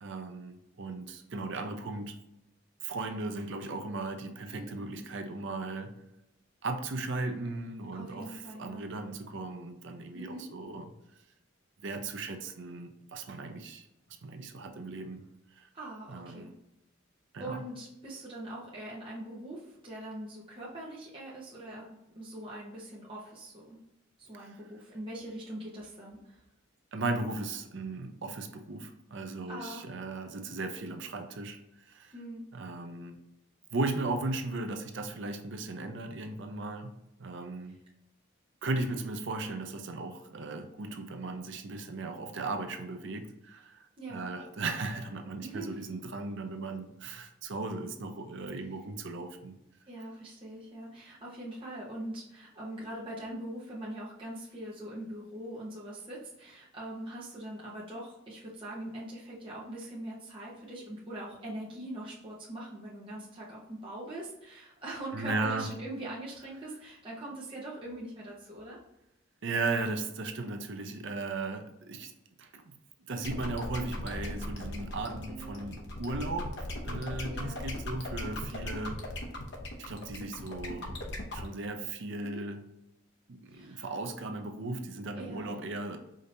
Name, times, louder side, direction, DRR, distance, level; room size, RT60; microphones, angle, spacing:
voice 1, 0.0-2.2 2.8-5.9 6.6-10.9 11.8-13.9 14.2-15.2 15.6-15.7 16.1-16.5 17.3-17.6 26.9-32.1 32.5-33.2 33.7-37.8 38.6-49.6 65.1-65.7 69.4-72.1 72.4-72.6 73.1-79.0 79.9-81.0 81.3-82.7 83.3-86.0, right 3 dB, 60° right, 6 dB, 0.6 m, -37 dB
voice 2, 7.9-8.9 10.1-10.5 15.7-16.5 17.4-23.8 24.2-26.4 29.5-29.9 32.1-32.5 38.8-39.0 44.0-44.3 45.4-45.8 49.9-68.8 75.3-75.6 77.3-77.7 82.2-82.4 83.5-83.9 85.2-85.4, right 1 dB, 25° right, -7 dB, 0.9 m, -42 dB
sound 1, 73.2-81.5, left 1 dB, 55° left, 0.8 m, -38 dB
5.0 x 2.8 x 2.6 m, 0.89 s
head